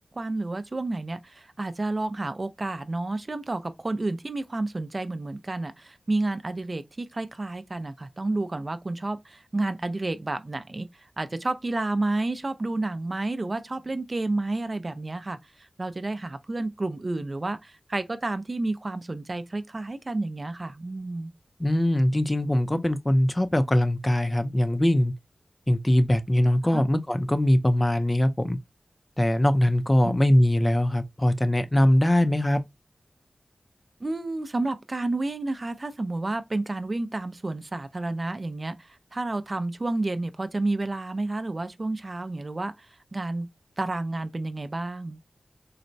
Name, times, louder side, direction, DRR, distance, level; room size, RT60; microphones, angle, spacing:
voice 1, 0.1-21.3 26.7-26.8 30.0-30.2 34.0-43.5 43.8-45.2, right 2 dB, 45° right, 0.4 m, -30 dB
voice 2, 21.6-25.1 25.7-28.6 29.2-32.6, left 1 dB, 25° left, 0.4 m, -22 dB
4.0 x 2.1 x 2.5 m
wide cardioid pair, 60°, 0 cm